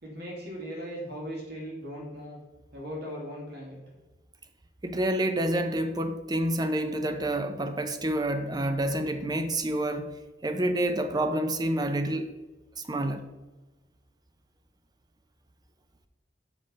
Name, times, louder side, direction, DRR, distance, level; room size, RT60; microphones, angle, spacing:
voice 1, 0.0-2.4 2.7-3.8, equal, 60° right, 2.4 m, -38 dB
voice 2, 4.8-10.1 10.4-12.3 12.8-13.2, right 1 dB, 20° right, 0.7 m, -28 dB
6.5 x 6.1 x 5.4 m
head